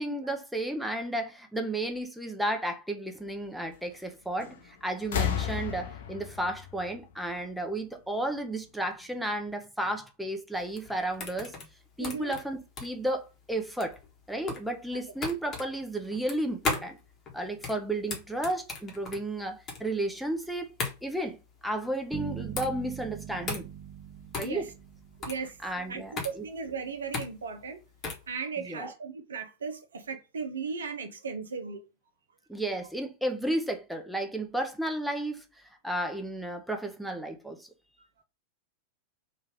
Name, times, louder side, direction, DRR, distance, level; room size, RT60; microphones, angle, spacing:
voice 1, 0.0-11.5 12.0-14.0 14.3-17.0 17.3-20.7 21.0-21.4 21.6-23.7 24.3-24.7 25.6-26.5 28.6-28.9 32.5-37.7, right 1 dB, ahead, 0.6 m, -33 dB
sound 1, 4.4-4.7 5.0-7.8 8.9-9.0, left 9 dB, 60° left, 0.6 m, -33 dB
sound 2, 10.5-28.3, left 3 dB, 25° left, 1.0 m, -37 dB
voice 2, 12.0-12.3 24.4-24.7 25.2-25.6 25.9-27.8 28.3-31.8 38.0-38.1, right 5 dB, 70° right, 0.5 m, -36 dB
sound 3, 22.1-25.8, right 9 dB, 35° right, 0.9 m, -42 dB
3.2 x 2.4 x 3.3 m
figure-of-eight pair, 90°, 0 cm